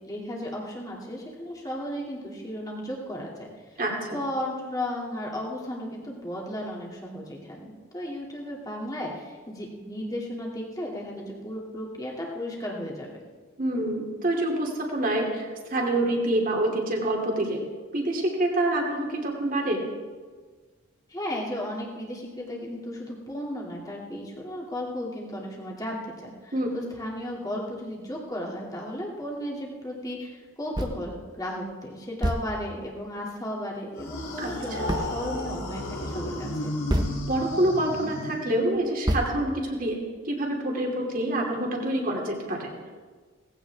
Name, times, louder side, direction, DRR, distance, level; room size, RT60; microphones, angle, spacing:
voice 1, 0.0-3.8 4.1-13.2 21.1-36.7, left 1 dB, 15° left, -3 dB, 2.5 m, -35 dB
voice 2, 3.8-4.2 13.6-17.6 17.9-19.8 26.5-26.7 34.4-34.5 34.8-34.9 37.3-42.7, right 1 dB, 40° right, 0 dB, 2.7 m, -27 dB
sound 1, 30.7-31.1 31.6-31.7 32.2-32.9 34.9-35.3 36.9-37.5 38.1-38.2 39.1-39.9, equal, 20° right, 1.0 m, -29 dB
sound 2, 34.0-38.8, left 1 dB, 85° left, 3.3 m, -33 dB
18.5 x 16.0 x 3.5 m, 1.5 s
head